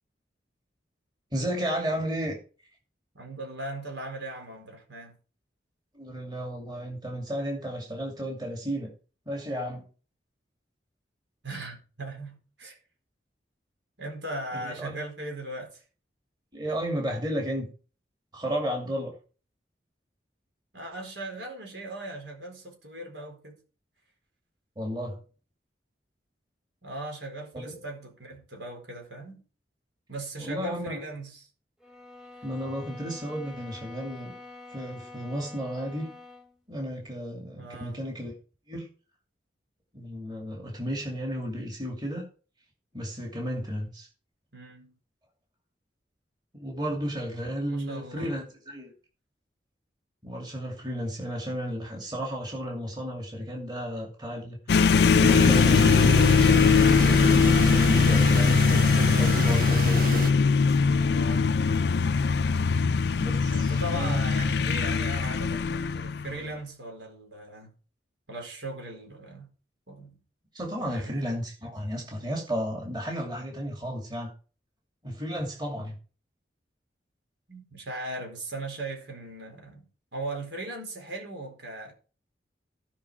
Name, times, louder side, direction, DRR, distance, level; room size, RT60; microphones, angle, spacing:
voice 1, 1.3-2.4 5.9-8.9 9.3-9.9 14.6-15.0 16.5-17.7 18.3-19.1 24.8-25.2 27.5-27.8 30.4-31.0 32.4-34.3 34.7-36.1 36.7-38.3 38.7-38.9 39.9-42.2 42.9-44.1 46.5-48.9 50.2-54.6 55.1-60.2 63.2-64.2 70.5-74.3 75.0-75.9, equal, 25° right, 2.6 m, -33 dB
voice 2, 3.1-5.2 11.4-12.8 14.0-15.8 20.7-23.6 26.8-29.4 30.1-31.5 37.6-38.0 44.5-44.9 47.6-48.3 61.1-61.5 63.5-67.7 68.3-69.5 69.9-70.2 70.8-71.1 71.6-71.7 77.5-81.9, right 1 dB, 80° right, 4.3 m, -38 dB
sound 1, 31.8-36.5, left 3 dB, 5° right, 1.3 m, -46 dB
sound 2, 54.7-66.4, left 5 dB, 65° left, 0.4 m, -21 dB
sound 3, 55.2-60.3, right 5 dB, 50° right, 0.4 m, -33 dB
16.0 x 5.7 x 4.9 m
head